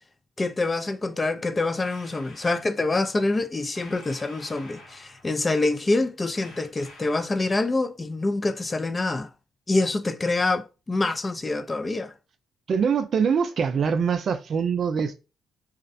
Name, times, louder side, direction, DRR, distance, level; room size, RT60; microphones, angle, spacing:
voice 1, 0.4-9.3 9.7-12.1, left 2 dB, 25° left, 0.3 m, -26 dB
sound 1, 1.8-2.7 3.7-5.3 6.3-7.4, left 2 dB, 90° left, 1.1 m, -48 dB
voice 2, 12.7-15.2, right 6 dB, 55° right, 0.4 m, -24 dB
2.4 x 2.1 x 2.6 m
cardioid pair, 90°, 0 cm